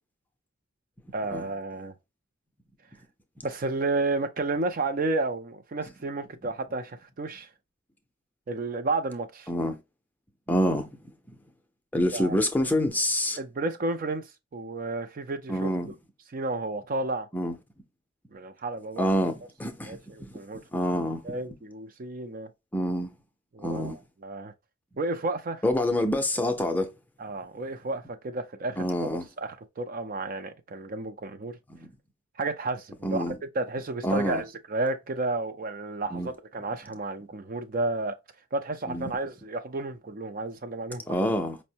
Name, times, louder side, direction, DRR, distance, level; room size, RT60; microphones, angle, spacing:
voice 1, 1.1-1.9 3.4-7.5 8.5-9.5 12.1-12.4 13.4-15.7 16.3-17.3 18.3-19.1 19.8-20.6 21.2-22.5 23.5-24.5 25.0-25.6 27.2-31.6 32.4-38.2 38.5-41.2, right 2 dB, 40° right, 0.4 m, -32 dB
voice 2, 9.5-9.8 10.5-10.9 11.9-13.4 15.5-15.9 17.3-17.5 19.0-19.3 19.6-20.3 20.7-21.2 22.7-23.1 23.6-24.0 25.6-26.9 28.8-29.3 31.7-31.9 33.0-33.4 34.0-34.4 36.1-36.3 38.9-39.1 41.1-41.6, equal, 10° left, 0.5 m, -27 dB
5.2 x 2.1 x 2.7 m
head